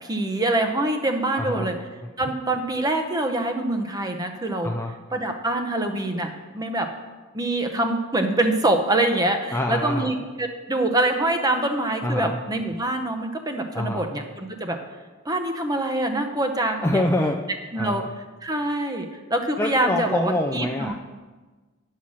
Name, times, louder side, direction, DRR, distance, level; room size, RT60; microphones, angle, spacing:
voice 1, 0.0-1.8 2.2-4.7 5.1-6.9 7.3-14.8 15.2-17.0 17.7-18.0 18.4-20.9, right 1 dB, 15° right, 5 dB, 0.7 m, -25 dB
voice 2, 1.4-1.7 4.6-4.9 9.5-10.1 12.0-12.4 13.7-14.0 16.8-17.4 17.8-18.1 19.6-20.9, left 1 dB, 10° left, 1 dB, 0.4 m, -25 dB
10.0 x 5.7 x 6.2 m, 1.3 s
head